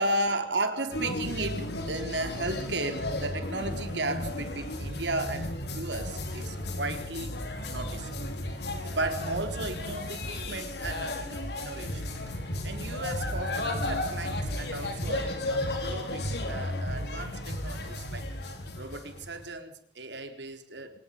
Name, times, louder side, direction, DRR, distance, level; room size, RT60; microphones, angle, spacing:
voice 1, 0.0-8.3 8.7-12.0 12.6-18.3 18.7-21.0, right 2 dB, 75° right, 6 dB, 3.9 m, -35 dB
sound 1, 0.9-19.5, left 1 dB, 65° left, 5.0 m, -34 dB
25.0 x 20.0 x 5.4 m, 0.64 s
head